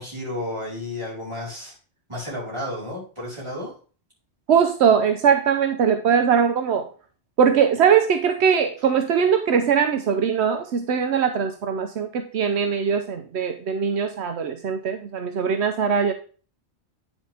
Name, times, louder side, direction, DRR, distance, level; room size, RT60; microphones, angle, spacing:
voice 1, 0.0-1.7 2.1-3.7, left 1 dB, 25° right, -6 dB, 4.5 m, -32 dB
voice 2, 4.5-6.9 7.4-16.1, right 7 dB, 80° right, 7 dB, 1.0 m, -21 dB
9.2 x 6.1 x 3.4 m, 0.39 s
omnidirectional pair, 1.1 m